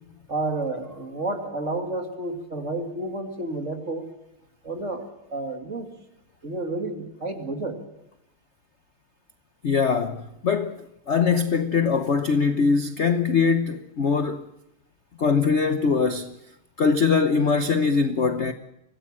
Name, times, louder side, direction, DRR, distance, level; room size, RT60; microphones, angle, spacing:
voice 1, 0.3-4.1 4.6-5.9 6.4-7.8, right 2 dB, 35° right, 2.7 m, -30 dB
voice 2, 9.6-14.4 15.2-16.3 16.8-18.5, left 5 dB, 50° left, 0.9 m, -22 dB
24.5 x 17.5 x 7.5 m
omnidirectional pair, 2.4 m